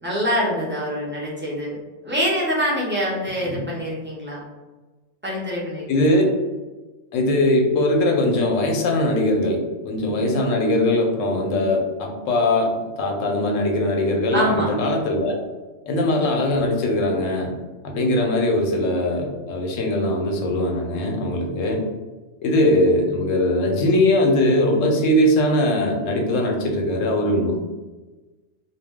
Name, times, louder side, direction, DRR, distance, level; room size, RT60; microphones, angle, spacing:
voice 1, 0.0-1.8 2.0-4.4 5.2-5.9 14.3-14.7, equal, 15° right, -6 dB, 0.4 m, -24 dB
voice 2, 5.9-6.2 7.1-15.4 15.9-17.5 17.8-21.8 22.4-27.6, left 1 dB, 80° left, 1 dB, 1.0 m, -21 dB
2.3 x 2.2 x 3.4 m, 1.2 s
omnidirectional pair, 1.3 m